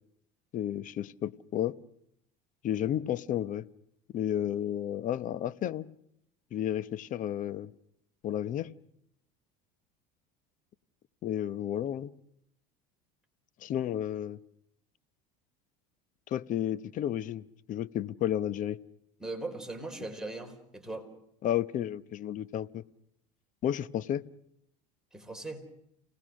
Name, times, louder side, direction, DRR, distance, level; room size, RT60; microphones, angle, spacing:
voice 1, 0.5-1.8 2.6-3.7 4.1-5.9 6.5-7.7 8.2-8.7 11.2-12.1 13.6-14.4 16.3-18.8 21.4-22.8 23.6-24.2, left 11 dB, 45° left, 15 dB, 0.9 m, -32 dB
voice 2, 19.2-21.1 25.1-25.6, right 2 dB, 5° right, 3 dB, 4.3 m, -39 dB
29.0 x 19.0 x 6.3 m, 0.76 s
supercardioid pair, 115°, 19 cm